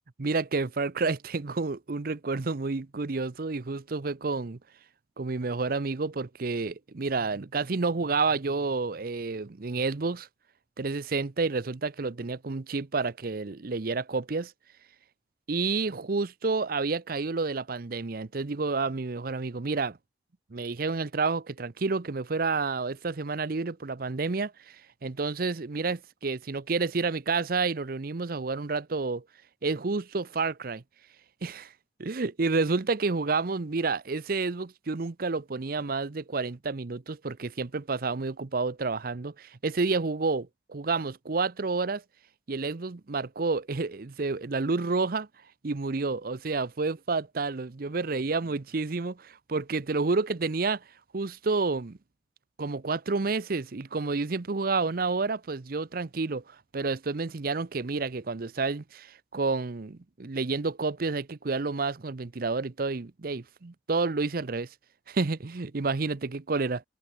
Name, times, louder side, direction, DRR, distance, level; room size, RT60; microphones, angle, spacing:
voice 1, 0.2-4.6 5.2-10.3 10.8-14.5 15.5-20.0 20.5-29.2 29.6-30.8 31.4-31.7 32.0-42.0 42.5-45.3 45.6-50.8 51.1-52.0 52.6-64.7 65.1-66.8, right 4 dB, 55° right, 0.7 m, -30 dB
head